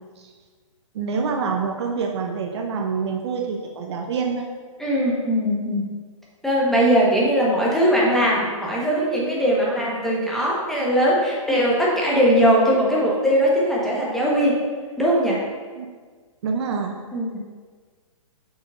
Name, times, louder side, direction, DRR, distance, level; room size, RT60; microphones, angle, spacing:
voice 1, 0.9-4.5 15.8-15.9 16.4-17.0, right 5 dB, 50° right, 2 dB, 0.7 m, -26 dB
voice 2, 4.8-5.9 6.4-14.7 15.0-15.4 17.1-17.4, equal, ahead, -5 dB, 1.2 m, -20 dB
7.0 x 6.2 x 2.5 m, 1.5 s
hypercardioid pair, 125°, 18 cm